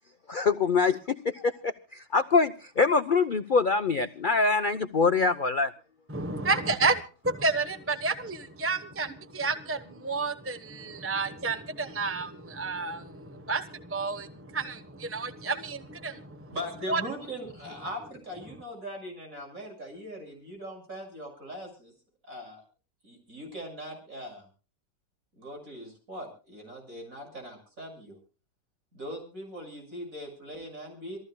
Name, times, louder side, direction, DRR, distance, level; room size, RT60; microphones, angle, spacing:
voice 1, 0.3-5.7, left 4 dB, 65° left, 9 dB, 0.5 m, -24 dB
voice 2, 6.1-16.5 16.9-17.0, right 3 dB, 10° right, 9 dB, 0.8 m, -30 dB
voice 3, 16.5-21.9 22.2-22.6 23.0-24.5 25.4-28.2 28.9-31.2, equal, 45° right, 3 dB, 7.2 m, -40 dB
27.0 x 15.0 x 2.3 m, 0.36 s
omnidirectional pair, 2.0 m